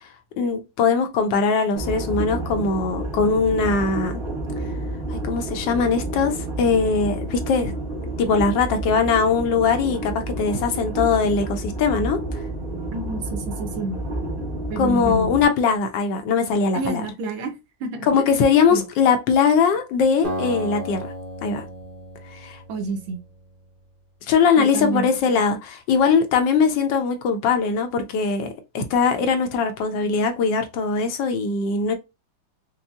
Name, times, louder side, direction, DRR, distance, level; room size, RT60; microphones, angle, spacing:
voice 1, 0.4-4.2 5.1-7.7 8.2-12.2 14.8-17.1 18.0-21.1 21.4-21.6 22.3-22.6 24.3-28.5 28.7-31.9, left 5 dB, 75° left, 1.2 m, -21 dB
sound 1, 1.7-15.5, right 1 dB, 40° right, 0.8 m, -30 dB
voice 2, 12.9-14.0 14.7-15.3 16.7-17.5 17.8-18.1 18.7-18.8 22.7-23.2 24.6-25.1, right 4 dB, 80° right, 1.5 m, -28 dB
Acoustic guitar, 20.2-23.4, equal, 65° right, 0.5 m, -33 dB
5.3 x 2.0 x 2.3 m
omnidirectional pair, 2.2 m